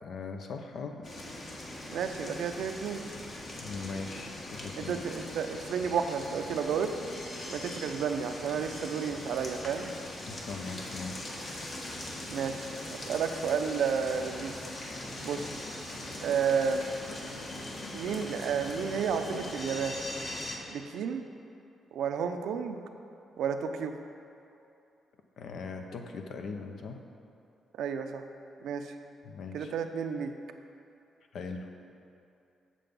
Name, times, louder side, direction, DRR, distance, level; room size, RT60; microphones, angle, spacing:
voice 1, 0.0-1.1 3.6-5.0 10.3-11.3 15.4-15.5 25.4-27.0 29.2-29.7 31.3-31.7, left 4 dB, 70° left, 4 dB, 0.8 m, -40 dB
sound 1, 1.0-20.6, left 1 dB, 50° left, 1.4 m, -41 dB
voice 2, 1.9-3.1 4.8-6.9 7.5-9.9 12.3-14.6 15.2-15.5 16.2-16.9 17.9-20.0 20.7-21.2 21.9-22.8 23.4-24.0 27.7-28.2 28.6-28.9 29.5-30.3, right 6 dB, 85° right, 7 dB, 0.5 m, -31 dB
7.5 x 6.9 x 5.3 m, 2.6 s
cardioid pair, 95°, 0 cm